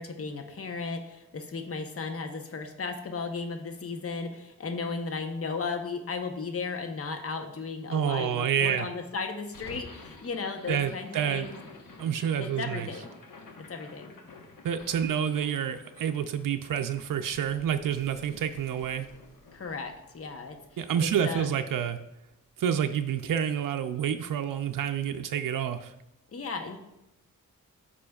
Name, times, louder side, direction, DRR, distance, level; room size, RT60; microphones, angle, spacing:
voice 1, 0.0-11.6 12.4-13.1 13.7-14.1 19.5-21.6 26.3-26.8, left 4 dB, 45° left, 4 dB, 0.9 m, -35 dB
voice 2, 7.9-8.9 10.7-11.5 12.0-12.9 14.6-19.1 20.8-22.0 22.6-25.9, right 8 dB, 75° right, 6 dB, 0.5 m, -28 dB
sound 1, 9.5-21.7, left 3 dB, 85° left, 1.1 m, -51 dB
13.5 x 5.0 x 2.4 m, 0.89 s
wide cardioid pair, 90°, 33 cm